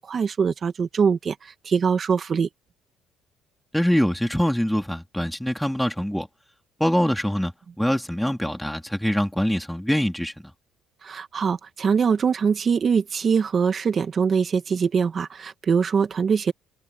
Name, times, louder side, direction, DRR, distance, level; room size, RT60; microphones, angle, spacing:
voice 1, 0.0-1.3 1.7-2.5 11.0-16.5, right 6 dB, 30° right, 2.2 m, -22 dB
voice 2, 3.7-6.3 6.8-7.5 7.8-10.3, equal, ahead, 2.7 m, -23 dB
cardioid pair, 150°, 0 cm